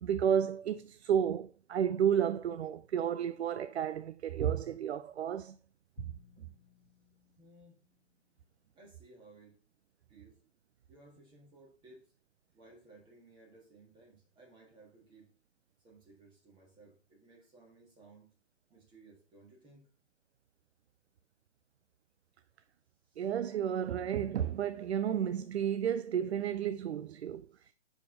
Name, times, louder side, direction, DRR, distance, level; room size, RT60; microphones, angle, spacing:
voice 1, 0.0-5.6 23.2-27.5, right 9 dB, 60° right, 0.5 m, -32 dB
Drum, 6.0-8.4, left 7 dB, 45° left, 1.0 m, -59 dB
voice 2, 7.4-7.8 8.7-9.6 10.1-10.4 10.9-12.1 12.5-15.3 15.8-18.3 18.7-19.9 23.0-23.3 27.5-27.7, right 2 dB, 15° right, 1.7 m, -59 dB
6.8 x 4.9 x 3.8 m
figure-of-eight pair, 140°, 36 cm